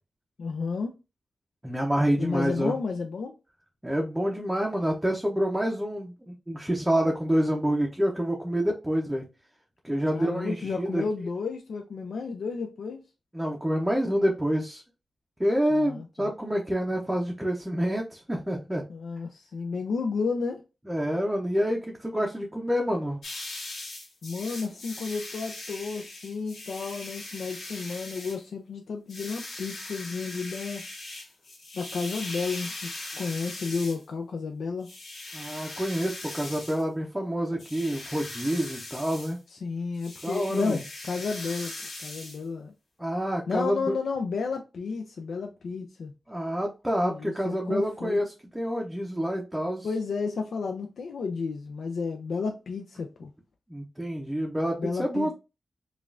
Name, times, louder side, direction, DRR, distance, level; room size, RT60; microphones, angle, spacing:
voice 1, 0.4-0.9 2.2-3.4 10.1-13.0 15.7-16.3 18.9-20.6 24.2-30.9 31.7-34.9 39.5-41.7 42.0-42.7 43.5-46.1 47.0-48.2 49.8-53.3 54.8-55.3, left 4 dB, 85° left, 0.4 m, -32 dB
voice 2, 1.6-2.7 3.8-9.3 9.8-11.0 13.3-14.8 15.4-18.8 20.9-23.2 35.3-39.4 40.2-40.8 43.0-43.9 46.3-49.9 53.7-55.3, equal, 10° right, 0.6 m, -27 dB
sound 1, 23.2-28.4 29.1-34.0 34.8-36.8 37.5-39.4 40.0-42.4, left 2 dB, 70° left, 1.8 m, -40 dB
5.1 x 2.4 x 2.4 m
wide cardioid pair, 130°, 0 cm